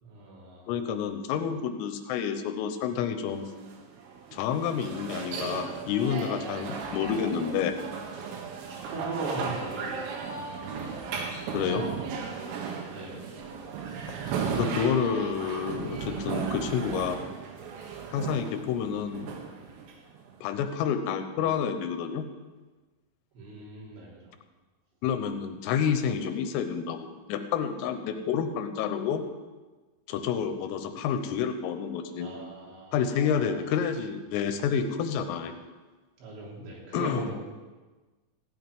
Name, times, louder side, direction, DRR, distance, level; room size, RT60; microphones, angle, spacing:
voice 1, 0.0-0.7 8.2-8.4 8.7-10.2 10.7-10.9 12.9-13.3 23.4-24.3 32.2-33.7 34.4-34.6 36.2-37.4, right 2 dB, 65° right, -3 dB, 5.5 m, -39 dB
voice 2, 0.7-3.5 4.3-7.7 9.3-9.5 11.5-11.9 14.6-17.2 18.1-19.3 20.4-22.3 25.0-29.2 30.1-32.3 32.9-35.5 36.9-37.3, left 7 dB, 85° left, 7 dB, 3.6 m, -29 dB
sound 1, 3.3-20.4, right 6 dB, 85° right, 4.2 m, -36 dB
15.5 x 7.3 x 9.6 m, 1.3 s
omnidirectional pair, 5.9 m